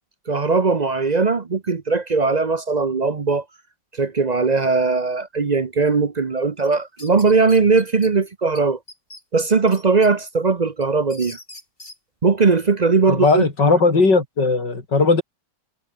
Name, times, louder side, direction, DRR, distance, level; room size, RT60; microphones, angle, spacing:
voice 1, 0.3-3.4 3.9-8.8 9.3-11.4 12.2-13.4, right 4 dB, 40° right, 0.5 m, -19 dB
sound 1, 6.6-8.1 8.5-8.6 8.9-10.1 10.5-12.0, left 1 dB, 25° left, 5.6 m, -41 dB
voice 2, 13.1-15.2, left 3 dB, 60° left, 4.8 m, -17 dB
omnidirectional pair, 2.1 m